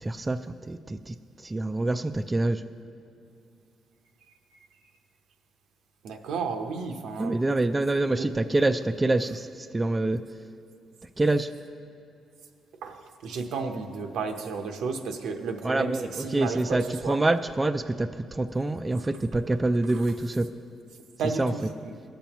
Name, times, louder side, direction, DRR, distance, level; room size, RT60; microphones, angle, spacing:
voice 1, 0.0-0.4 0.7-1.1 1.4-2.6 7.2-10.2 11.2-11.5 15.6-20.5 21.4-21.5, right 2 dB, 20° right, 8 dB, 0.3 m, -26 dB
voice 2, 6.0-7.3 8.0-8.5 12.8-17.2 19.9-20.0 21.2-22.0, right 4 dB, 80° right, 4 dB, 0.8 m, -33 dB
17.0 x 6.9 x 3.0 m, 2.6 s
cardioid pair, 90°, 0 cm